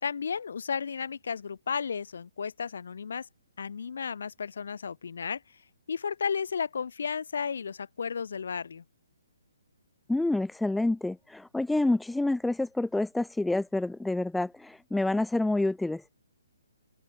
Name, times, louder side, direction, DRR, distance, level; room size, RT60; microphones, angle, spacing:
voice 1, 0.0-3.3 3.6-5.4 5.9-8.8, left 6 dB, 70° left, 3.9 m, -33 dB
voice 2, 10.1-16.0, left 2 dB, 5° left, 3.1 m, -28 dB
open air
hypercardioid pair, 155°, 0 cm